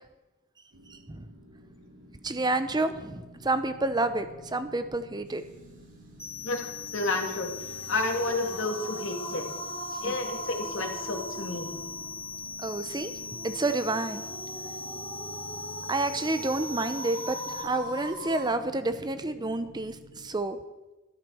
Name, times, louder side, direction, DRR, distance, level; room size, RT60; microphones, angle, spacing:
sound 1, 0.7-20.3, equal, 80° right, 4.4 m, -51 dB
voice 1, 0.9-1.2 2.2-5.4 10.0-10.2 12.6-13.1 13.4-14.2 15.9-20.6, right 2 dB, 20° right, 10 dB, 0.7 m, -29 dB
sound 2, 6.2-17.6, left 3 dB, 30° left, 3.7 m, -40 dB
voice 2, 6.4-9.5 10.0-11.7, left 2 dB, 65° left, 3 dB, 2.3 m, -31 dB
sound 3, 7.4-18.5, equal, 45° right, 6.1 m, -41 dB
13.0 x 12.5 x 6.3 m, 1.1 s
head